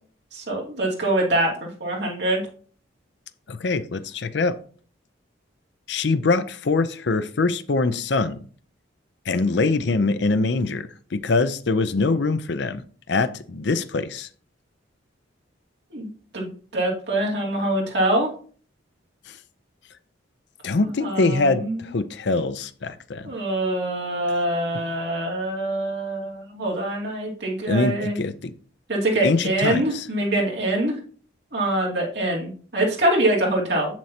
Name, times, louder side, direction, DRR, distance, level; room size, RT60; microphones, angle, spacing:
voice 1, 0.3-2.4 15.9-18.3 21.0-21.9 23.2-28.2 28.9-31.0 31.5-34.0, right 1 dB, 55° right, -2 dB, 2.6 m, -24 dB
voice 2, 3.5-4.6 5.9-8.4 9.3-12.8 13.1-14.3 19.3-19.4 20.6-23.3 27.7-28.5 29.2-30.0, left 3 dB, 60° left, 13 dB, 0.5 m, -23 dB
7.7 x 7.3 x 2.8 m, 0.44 s
head